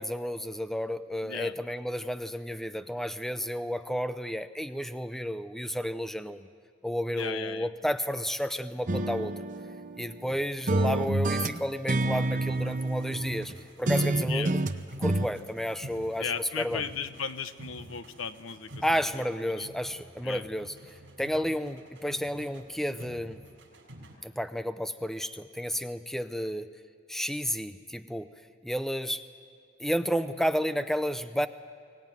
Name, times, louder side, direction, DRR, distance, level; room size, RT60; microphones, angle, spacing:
voice 1, 0.0-6.5 6.8-9.3 10.0-13.5 13.8-14.6 15.0-16.8 18.8-23.4 24.2-26.7 27.1-28.3 28.6-29.2 29.8-31.5, equal, ahead, 11 dB, 0.5 m, -31 dB
voice 2, 1.2-1.5 7.1-7.7 14.2-14.5 16.2-18.7 19.5-19.7 20.2-20.4, left 6 dB, 90° left, 12 dB, 0.9 m, -36 dB
sound 1, 8.9-10.3 10.7-13.5 13.9-15.3, right 2 dB, 40° right, 0.8 m, -28 dB
sound 2, 12.1-19.3 19.6-24.2, equal, 70° right, 4.7 m, -49 dB
23.5 x 18.0 x 9.2 m, 2.4 s
head